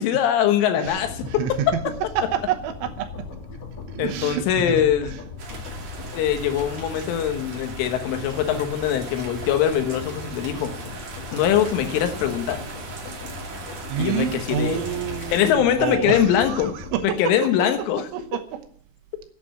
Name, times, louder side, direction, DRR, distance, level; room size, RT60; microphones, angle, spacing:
voice 1, 0.0-1.4 4.0-5.1 6.1-10.7 11.3-12.6 14.0-14.8 15.3-16.8 17.0-18.1, left 10 dB, 80° left, 7 dB, 3.7 m, -22 dB
voice 2, 0.8-1.8 2.2-3.1 3.9-4.8 13.9-17.9 18.1-18.6, right 9 dB, 75° right, 6 dB, 3.3 m, -28 dB
sound 1, 0.9-17.0, left 5 dB, 50° left, 3.3 m, -38 dB
sound 2, 5.4-15.5, right 4 dB, 45° right, 3.4 m, -39 dB
11.5 x 8.7 x 9.4 m, 0.62 s
omnidirectional pair, 5.8 m